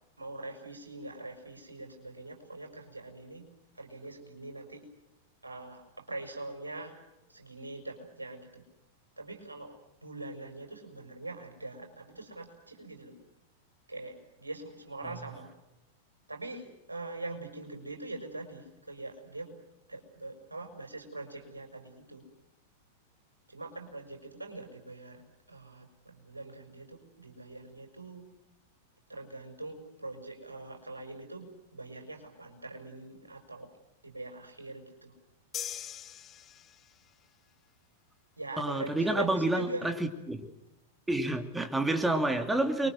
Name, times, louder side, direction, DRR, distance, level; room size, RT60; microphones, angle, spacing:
voice 1, 0.2-3.5 3.7-4.8 5.4-6.9 7.3-8.6 9.2-13.1 13.9-15.5 16.3-19.6 19.9-22.2 23.5-25.2 25.5-28.3 29.1-33.7 34.0-35.1 38.4-39.9 42.8-42.9, right 2 dB, 85° right, 4 dB, 6.2 m, -43 dB
sound 1, 35.5-37.1, left 10 dB, 30° left, 1.1 m, -41 dB
voice 2, 38.6-40.4 41.1-42.9, right 2 dB, 5° right, 6 dB, 2.7 m, -29 dB
29.5 x 23.5 x 6.4 m, 0.92 s
figure-of-eight pair, 95°, 0 cm